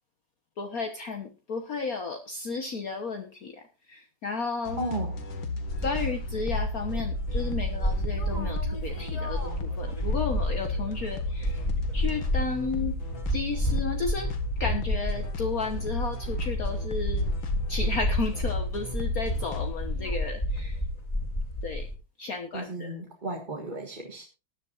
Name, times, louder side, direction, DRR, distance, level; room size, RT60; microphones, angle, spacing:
voice 1, 0.6-4.8 5.8-11.6 11.9-13.0 13.3-14.3 14.6-17.3 17.7-20.8 21.6-21.9 22.2-22.9, left 4 dB, 50° left, 5 dB, 1.5 m, -33 dB
sound 1, 4.6-19.7, left 2 dB, 85° left, 2.4 m, -34 dB
voice 2, 4.8-5.2 22.5-24.3, right 2 dB, 25° right, 1 dB, 1.7 m, -34 dB
sound 2, 5.7-21.9, equal, 20° left, 2.9 m, -31 dB
19.5 x 10.5 x 2.5 m, 0.30 s
omnidirectional pair, 2.1 m